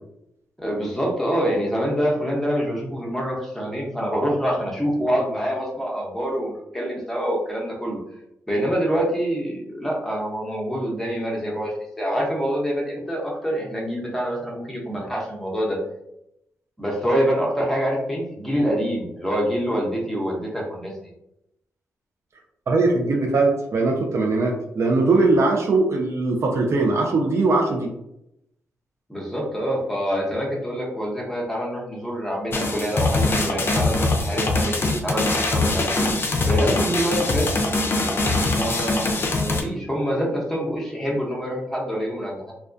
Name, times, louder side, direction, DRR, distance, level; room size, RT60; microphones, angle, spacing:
voice 1, 0.6-8.0 8.5-15.8 16.8-20.9 29.1-36.1 36.5-37.5 38.4-42.5, equal, 5° left, -3 dB, 0.8 m, -26 dB
voice 2, 22.7-27.9, right 3 dB, 60° right, 1 dB, 0.4 m, -20 dB
sound 1, 32.5-39.6, left 2 dB, 45° left, 0.5 m, -22 dB
2.2 x 2.2 x 2.5 m, 0.82 s
cardioid pair, 70°, 5 cm